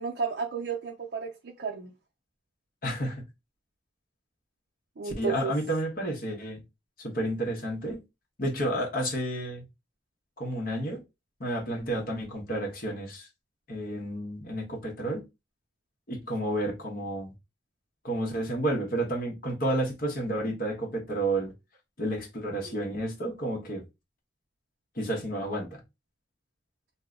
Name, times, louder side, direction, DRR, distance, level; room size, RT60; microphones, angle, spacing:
voice 1, 0.0-1.9 5.0-5.5 22.6-22.7, right 5 dB, 65° right, 0.5 m, -33 dB
voice 2, 2.8-3.2 5.0-6.6 7.0-8.0 8.4-9.6 10.4-11.0 11.4-13.3 13.7-15.2 16.1-17.3 18.0-21.5 22.0-23.8 25.0-25.8, right 1 dB, 50° left, 1.0 m, -31 dB
2.8 x 2.1 x 3.6 m
head